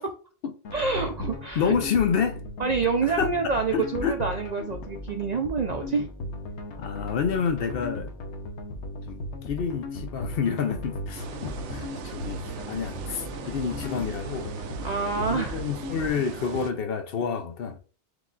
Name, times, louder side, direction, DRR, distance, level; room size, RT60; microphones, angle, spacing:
sound 1, 0.6-16.1, left 1 dB, 85° left, 1.1 m, -37 dB
voice 1, 0.7-1.8 2.6-6.1 14.8-15.6, right 4 dB, 55° right, 0.5 m, -27 dB
voice 2, 1.2-2.4 3.2-3.3 3.7-4.2 4.6-4.7 6.8-8.1 9.1-14.5 15.2-17.8, left 6 dB, 60° left, 0.8 m, -29 dB
sound 2, 11.1-16.7, right 7 dB, 85° right, 0.9 m, -39 dB
4.8 x 2.3 x 3.8 m
omnidirectional pair, 1.2 m